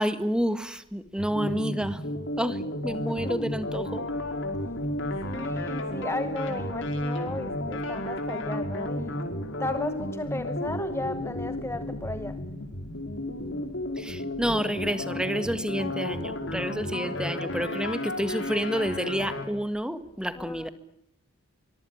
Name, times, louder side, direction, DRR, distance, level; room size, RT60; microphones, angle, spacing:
voice 1, 0.0-2.0 2.4-4.1 14.0-20.7, equal, 5° right, 1.7 m, -29 dB
sound 1, 1.2-19.4, left 1 dB, 60° left, 5.2 m, -32 dB
voice 2, 5.2-9.3 9.6-12.5 20.3-20.7, left 1 dB, 10° left, 1.0 m, -35 dB
24.5 x 22.5 x 9.8 m
head